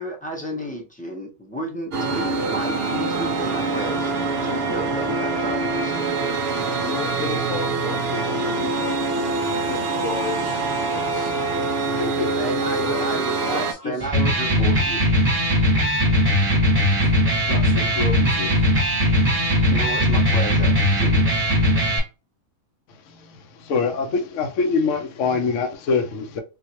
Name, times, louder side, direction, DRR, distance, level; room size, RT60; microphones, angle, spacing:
voice 1, 0.0-4.1 4.4-6.1 12.3-15.0 19.7-21.2, right 1 dB, 10° left, 0.6 m, -32 dB
sound 1, 1.9-13.7, right 3 dB, 60° right, 0.6 m, -24 dB
voice 2, 6.8-10.7 10.9-11.4 11.9-13.2 13.5-14.0 17.0-18.6, left 5 dB, 85° left, 1.5 m, -33 dB
Electric guitar, 14.0-22.0, left 1 dB, 25° right, 1.0 m, -19 dB
voice 3, 23.1-26.4, left 4 dB, 60° left, 1.0 m, -24 dB
3.7 x 2.5 x 2.8 m
omnidirectional pair, 1.6 m